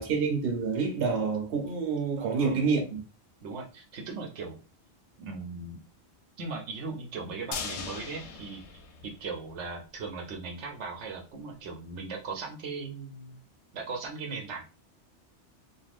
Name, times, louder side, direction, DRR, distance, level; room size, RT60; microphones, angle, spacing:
voice 1, 0.0-3.0, right 5 dB, 60° right, 0.9 m, -28 dB
voice 2, 2.2-2.6 3.4-4.6 5.2-5.8 6.4-8.6 9.0-13.4 13.7-14.7, right 4 dB, 85° right, 1.0 m, -38 dB
sound 1, 7.5-9.7 10.0-10.1 10.4-10.5, left 5 dB, 80° left, 0.9 m, -39 dB
3.3 x 2.4 x 2.4 m
omnidirectional pair, 1.2 m